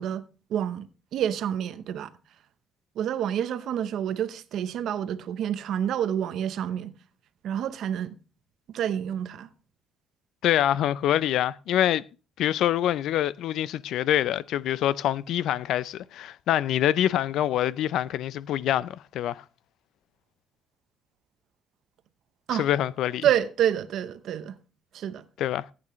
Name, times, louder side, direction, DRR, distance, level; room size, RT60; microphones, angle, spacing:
voice 1, 0.0-2.1 3.0-6.9 7.4-8.1 8.7-9.5 22.5-22.7 23.2-24.6 24.9-25.2, right 10 dB, 60° right, 0.7 m, -28 dB
voice 2, 10.4-12.0 12.4-19.4 22.6-23.2 25.4-25.7, left 12 dB, 65° left, 0.4 m, -25 dB
14.5 x 8.7 x 3.1 m
cardioid pair, 155°, 0 cm